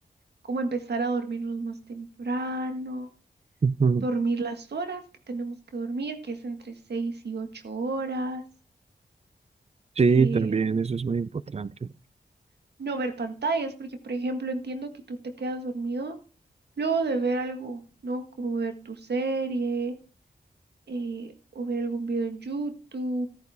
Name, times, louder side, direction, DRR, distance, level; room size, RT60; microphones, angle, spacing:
voice 1, 0.5-3.1 4.0-8.4 10.1-10.8 12.8-16.2 16.8-19.9 20.9-23.3, right 3 dB, 80° right, 1.8 m, -31 dB
voice 2, 3.6-4.0 10.0-11.7, right 5 dB, 40° right, 0.5 m, -23 dB
14.0 x 9.3 x 3.6 m
cardioid pair, 50°, 17 cm